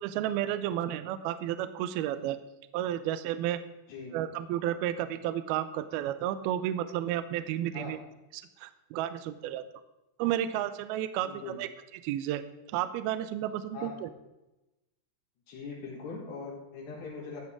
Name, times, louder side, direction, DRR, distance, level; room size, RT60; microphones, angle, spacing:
voice 1, 0.0-2.4 2.7-3.6 4.1-8.0 8.3-9.7 10.2-11.7 12.0-12.4 12.7-14.1, right 12 dB, 80° right, 12 dB, 2.3 m, -32 dB
voice 2, 11.2-11.6 13.7-14.0 15.5-17.5, left 4 dB, 75° left, -5 dB, 3.9 m, -41 dB
15.5 x 9.2 x 3.7 m, 0.97 s
omnidirectional pair, 4.9 m